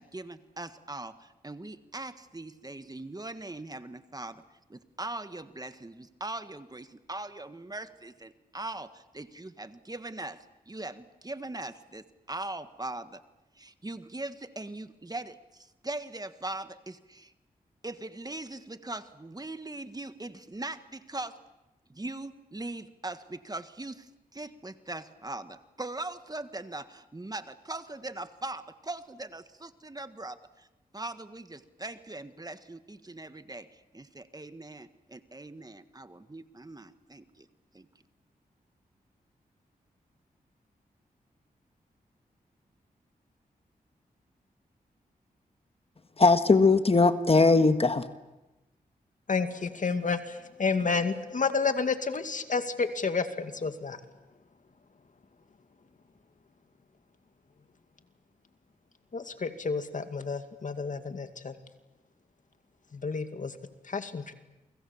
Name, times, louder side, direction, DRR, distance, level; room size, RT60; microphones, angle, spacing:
voice 1, 0.0-4.4 4.7-13.2 13.5-17.3 17.8-21.4 21.9-30.7 30.9-37.5 37.7-37.9, right 2 dB, 25° right, 10 dB, 1.6 m, -40 dB
voice 2, 46.2-48.1, left 3 dB, 40° left, 9 dB, 1.6 m, -20 dB
voice 3, 49.3-54.0 59.1-61.6 62.9-63.5 63.8-64.3, left 4 dB, 55° left, 8 dB, 2.3 m, -30 dB
29.5 x 24.5 x 7.2 m, 1.0 s
cardioid pair, 55°, 16 cm